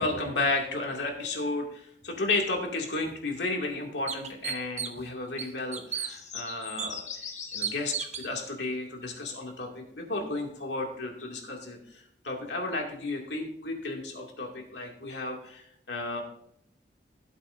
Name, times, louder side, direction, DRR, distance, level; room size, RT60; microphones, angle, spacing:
voice 1, 0.0-7.2 7.5-16.2, left 2 dB, 80° left, 1 dB, 2.3 m, -33 dB
sound 1, 3.0-3.1 3.6-3.7 4.1-5.1 5.4-6.1 6.8-6.9 7.6-8.3, right 8 dB, 40° right, 0.9 m, -33 dB
sound 2, 6.1-8.5 11.2-11.3, left 6 dB, 40° left, 1.3 m, -41 dB
16.0 x 8.0 x 2.6 m, 0.70 s
head